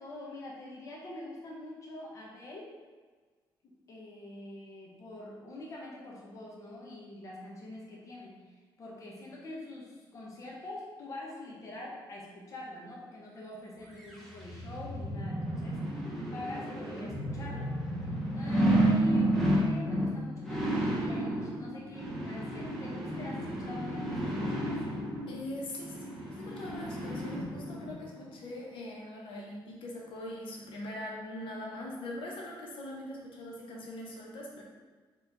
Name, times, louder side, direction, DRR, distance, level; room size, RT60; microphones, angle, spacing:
voice 1, 0.0-2.8 3.6-15.8 16.3-17.8 18.3-24.9, left 2 dB, 35° left, -4 dB, 0.8 m, -44 dB
sound 1, 14.0-27.9 28.4-28.5, right 1 dB, 5° left, 0.8 m, -31 dB
voice 2, 25.3-34.6, left 1 dB, 75° left, -2 dB, 0.9 m, -42 dB
4.4 x 3.1 x 3.9 m, 1.4 s
cardioid pair, 170°, 9 cm